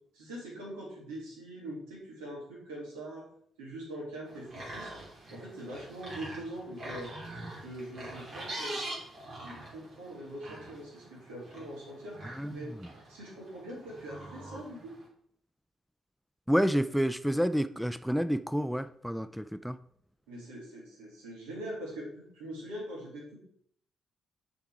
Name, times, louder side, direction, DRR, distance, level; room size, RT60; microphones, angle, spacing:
voice 1, 0.1-3.3 3.6-4.9 5.3-7.1 7.6-8.8 9.4-12.7 13.1-15.0 20.3-23.4, right 1 dB, 90° right, -3 dB, 2.7 m, -42 dB
sound 1, 4.3-15.1, right 1 dB, 60° right, 3.0 m, -44 dB
voice 2, 16.5-19.8, equal, ahead, 12 dB, 0.4 m, -29 dB
7.0 x 4.5 x 4.7 m, 0.66 s
hypercardioid pair, 50°, 0 cm